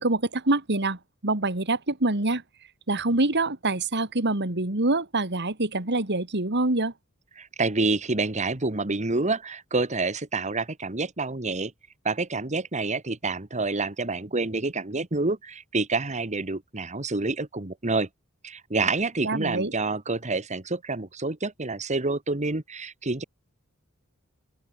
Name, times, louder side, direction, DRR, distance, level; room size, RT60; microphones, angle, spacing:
voice 1, 0.0-2.4 2.9-6.9 19.2-19.7, right 2 dB, 55° right, 2.8 m, -25 dB
voice 2, 7.4-11.7 12.1-18.1 18.4-23.2, right 3 dB, 35° right, 1.7 m, -28 dB
open air
head